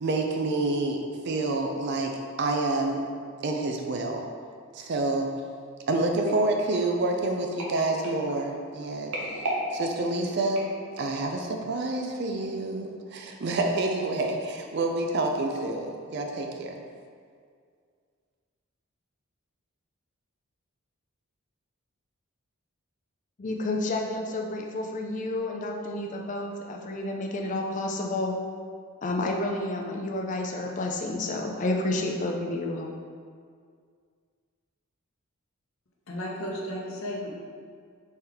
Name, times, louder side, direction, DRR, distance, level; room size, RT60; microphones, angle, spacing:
voice 1, 0.0-3.1 3.4-4.3 4.7-5.3 5.9-9.4 9.7-10.7 11.0-16.8, right 2 dB, 50° right, 2 dB, 0.4 m, -28 dB
sound 1, 6.3-11.3 11.9-12.1 12.4-12.5, right 1 dB, 75° right, 1.0 m, -37 dB
voice 2, 23.4-28.3 29.0-32.9, left 2 dB, 35° left, 1 dB, 0.4 m, -30 dB
voice 3, 36.1-37.4, equal, 65° left, -2 dB, 0.8 m, -34 dB
4.3 x 3.5 x 3.5 m, 2.1 s
head